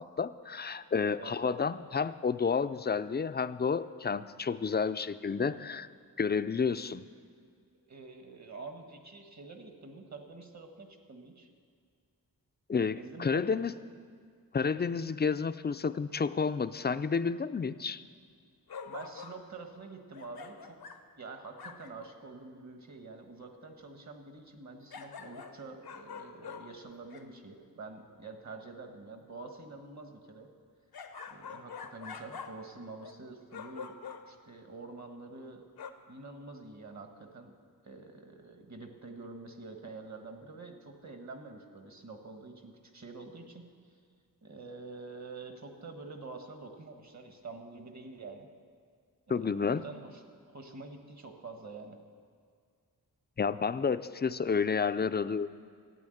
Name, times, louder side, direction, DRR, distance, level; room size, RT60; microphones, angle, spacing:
voice 1, 0.0-5.9 6.2-7.0 12.7-13.7 14.5-18.0 49.3-49.8 53.4-55.5, left 5 dB, 30° left, 13 dB, 0.4 m, -30 dB
voice 2, 1.2-1.6 7.9-11.5 12.9-13.6 18.8-20.8 21.2-30.5 31.3-34.0 34.3-35.6 36.1-37.5 37.8-43.6 44.4-48.5 49.3-50.2 50.5-52.0, right 3 dB, 50° right, 5 dB, 1.5 m, -47 dB
sound 1, 18.7-19.5 20.1-21.1 21.6-22.1 24.9-27.3 30.9-32.7 33.0-33.2 33.5-34.4 35.8-35.9, left 6 dB, 85° left, 0.8 m, -45 dB
14.0 x 9.1 x 7.9 m, 2.1 s
wide cardioid pair, 115°, 36 cm